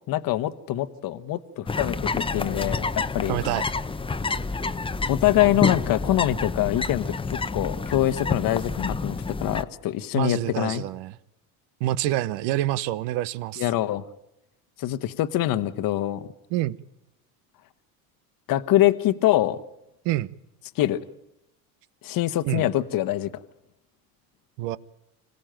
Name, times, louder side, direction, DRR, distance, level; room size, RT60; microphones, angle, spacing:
voice 1, 0.1-3.4 5.1-10.8 13.6-14.0 14.8-16.3 18.5-19.6 20.8-21.0 22.0-23.3, left 14 dB, 50° left, 1.2 m, -24 dB
sound 1, 1.7-9.6, left 3 dB, 10° left, 0.8 m, -29 dB
voice 2, 3.3-3.6 10.1-11.1 11.8-13.6 16.5-16.8 20.0-20.3 22.4-22.7 24.6-24.8, right 15 dB, 70° right, 1.0 m, -26 dB
26.0 x 16.5 x 9.0 m
supercardioid pair, 90°, 43 cm